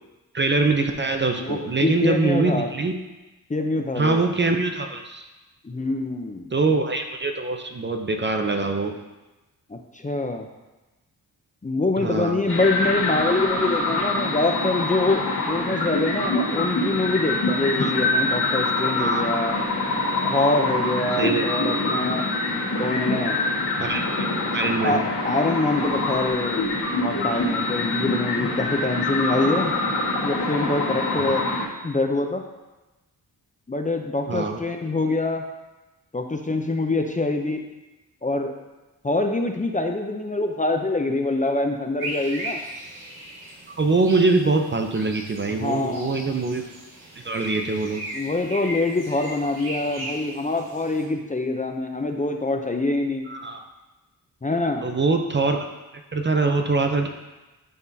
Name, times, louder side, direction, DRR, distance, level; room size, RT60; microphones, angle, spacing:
voice 1, 0.3-2.9 4.0-5.3 6.5-9.0 12.0-12.4 17.8-17.9 19.0-19.3 21.2-21.4 23.8-24.1 24.5-25.0 31.2-31.3 34.3-34.6 43.8-46.7 47.2-48.0 53.3-53.6 54.8-55.7 56.1-57.1, right 3 dB, 30° right, 4 dB, 0.6 m, -23 dB
voice 2, 1.4-2.7 3.5-4.2 5.6-6.5 9.7-10.5 11.6-19.5 20.3-22.2 22.8-23.4 24.8-26.7 26.9-29.7 30.2-31.4 31.8-32.4 33.7-35.4 36.1-37.7 38.2-38.5 39.0-42.6 45.6-46.2 48.1-53.3 54.4-54.8, left 2 dB, 20° left, 4 dB, 0.6 m, -25 dB
sound 1, 12.5-31.6, left 2 dB, 75° left, 1.8 m, -25 dB
sound 2, 42.0-51.0, right 1 dB, 70° right, 1.8 m, -37 dB
10.5 x 3.6 x 2.7 m, 1.1 s
cardioid pair, 60°, 38 cm